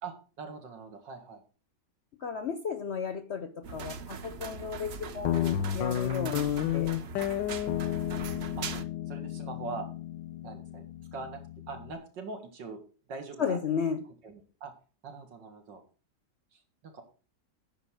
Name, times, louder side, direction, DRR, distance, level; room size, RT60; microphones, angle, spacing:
voice 1, 0.0-1.4 8.6-8.7 9.1-9.9 10.4-10.9 11.1-11.4 11.7-12.8 13.1-13.6 14.2-14.7 15.0-15.8 16.5-17.0, right 4 dB, 90° right, 5 dB, 2.5 m, -42 dB
voice 2, 2.2-7.0 13.4-14.0, left 6 dB, 60° left, 11 dB, 0.7 m, -34 dB
sound 1, 3.6-8.8, right 5 dB, 55° right, 0.7 m, -40 dB
Guitar, 5.2-11.9, left 11 dB, 90° left, 1.3 m, -32 dB
9.8 x 5.5 x 6.2 m, 0.37 s
omnidirectional pair, 1.9 m